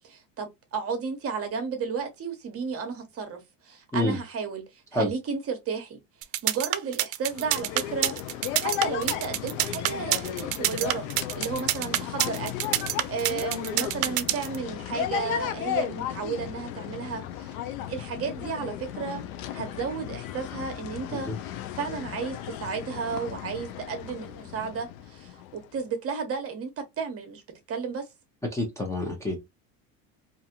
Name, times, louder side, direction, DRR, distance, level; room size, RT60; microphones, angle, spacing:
voice 1, 0.0-6.0 6.4-8.1 8.5-12.5 12.8-17.6 17.9-27.4 27.7-28.1, right 5 dB, 35° right, 0.9 m, -33 dB
sound 1, 6.2-14.6, right 15 dB, 75° right, 0.5 m, -26 dB
sound 2, 7.3-25.8, left 10 dB, 90° left, 0.6 m, -35 dB
voice 2, 28.5-29.4, left 1 dB, 5° left, 0.6 m, -28 dB
2.5 x 2.4 x 2.8 m
supercardioid pair, 115°, 42 cm